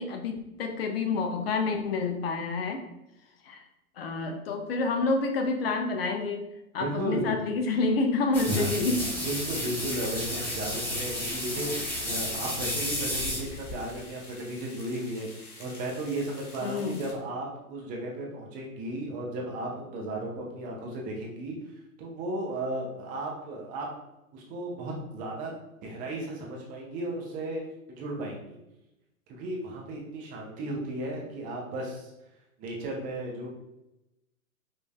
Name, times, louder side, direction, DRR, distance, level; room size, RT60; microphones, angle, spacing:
voice 1, 0.0-2.9 3.4-3.6 4.0-6.5 6.7-9.0 16.6-17.1, left 3 dB, 45° left, 5 dB, 0.5 m, -28 dB
voice 2, 6.8-7.4 8.5-8.8 9.2-11.7 12.1-21.6 22.0-23.9 24.3-25.5 25.8-27.6 28.0-28.6 29.3-32.1 32.6-33.5, right 1 dB, 20° right, -1 dB, 0.5 m, -34 dB
sound 1, 8.3-13.8, left 1 dB, 5° left, 1.1 m, -32 dB
sound 2, 11.3-17.1, left 2 dB, 90° left, 1.1 m, -49 dB
5.4 x 2.5 x 2.3 m, 0.90 s
hypercardioid pair, 115°, 44 cm